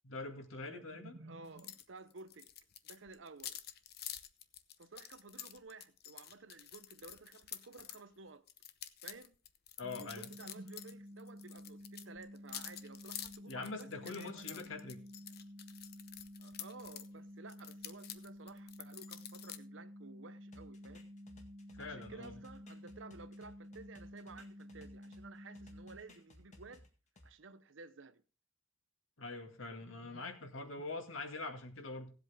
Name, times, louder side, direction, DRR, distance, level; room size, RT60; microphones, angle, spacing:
voice 1, 0.0-1.2 9.8-10.3 13.5-15.0 21.8-22.4 29.2-32.1, left 3 dB, 85° left, 2.0 m, -44 dB
voice 2, 0.7-2.5 2.8-3.6 4.8-8.4 9.0-9.4 10.0-14.8 16.4-21.1 21.8-26.9 27.2-28.2 29.8-30.5, right 3 dB, 70° right, 0.8 m, -54 dB
sound 1, 1.6-1.8 2.1-8.0 8.5-10.9 11.2-17.1 17.5-19.6, left 11 dB, 55° left, 0.8 m, -48 dB
sound 2, 9.8-26.0, equal, 40° right, 1.5 m, -52 dB
sound 3, 20.5-25.2 25.5-27.3, left 1 dB, 35° left, 1.8 m, -59 dB
17.0 x 8.0 x 3.5 m
head